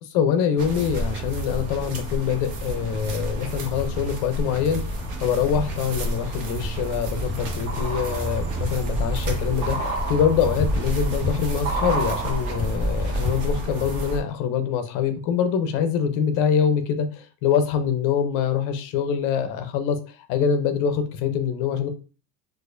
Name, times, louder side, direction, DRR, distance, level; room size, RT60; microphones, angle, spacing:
voice 1, 0.0-4.8 5.2-21.9, left 7 dB, 45° left, 8 dB, 0.5 m, -24 dB
sound 1, 0.6-14.2, right 1 dB, 70° right, 1.0 m, -30 dB
sound 2, 4.6-5.4 5.8-13.7 14.0-14.1, equal, 45° right, 1.3 m, -30 dB
4.2 x 2.5 x 2.5 m, 0.35 s
cardioid pair, 175°, 45 cm